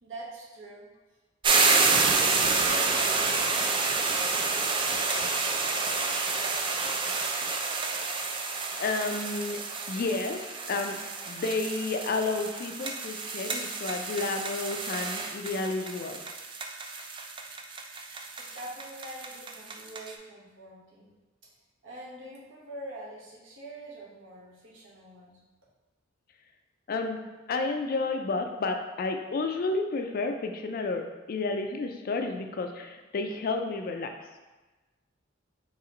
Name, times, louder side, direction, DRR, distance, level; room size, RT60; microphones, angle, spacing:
voice 1, 0.0-0.9 1.4-7.1 18.0-21.1 21.8-25.4, right 1 dB, 75° right, -5 dB, 1.2 m, -45 dB
sound 1, 1.4-20.1, right 4 dB, 25° right, 0.3 m, -29 dB
voice 2, 8.8-11.0 11.3-16.2 26.9-27.2 27.5-34.1, left 3 dB, 50° left, 5 dB, 0.4 m, -31 dB
4.3 x 3.0 x 3.7 m, 1.2 s
head